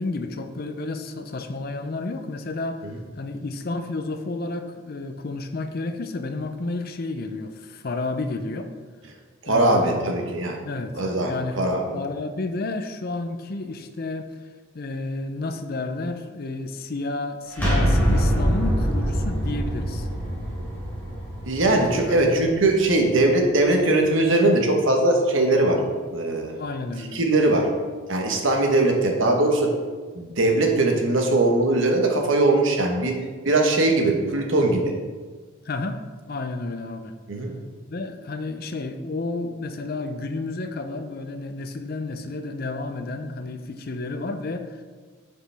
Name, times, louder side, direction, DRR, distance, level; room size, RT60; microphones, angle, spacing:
voice 1, 0.0-2.9 3.2-8.7 9.5-11.6 11.9-14.3 14.7-20.1 21.9-22.2 26.6-27.2 35.6-36.0 36.3-37.1 37.9-44.8, left 2 dB, 45° left, 8 dB, 0.5 m, -31 dB
voice 2, 9.4-10.6 10.9-12.0 21.5-25.8 26.1-26.5 27.1-27.7 28.1-29.7 30.1-33.2 33.4-34.9 37.3-37.5, right 2 dB, 65° right, 2 dB, 1.2 m, -20 dB
sound 1, 17.5-23.2, equal, 10° left, 2.1 m, -24 dB
9.7 x 5.0 x 3.4 m, 1.5 s
head